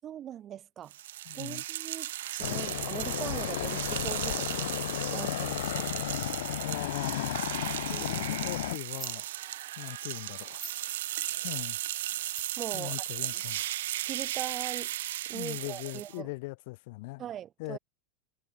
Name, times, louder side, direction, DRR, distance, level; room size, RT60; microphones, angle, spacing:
voice 1, 0.0-0.9 1.4-4.7 5.1-5.9 7.9-8.2 12.6-13.4 14.0-14.9 15.3-16.3 17.2-17.8, right 11 dB, 30° right, 6.0 m, -41 dB
sound 1, 0.9-16.2, right 14 dB, 85° right, 1.7 m, -36 dB
voice 2, 1.3-1.6 6.6-7.4 8.0-9.3 9.8-10.7 11.4-11.8 12.7-13.6 15.3-17.2 17.6-17.8, left 24 dB, 65° left, 4.1 m, -40 dB
sound 2, 2.4-8.8, left 15 dB, 80° left, 1.0 m, -34 dB
sound 3, 8.9-9.2 9.6-9.7 10.4-10.9 11.8-12.7 13.6-13.7 13.9-14.0, right 4 dB, 10° right, 2.1 m, -46 dB
supercardioid pair, 140°, 0 cm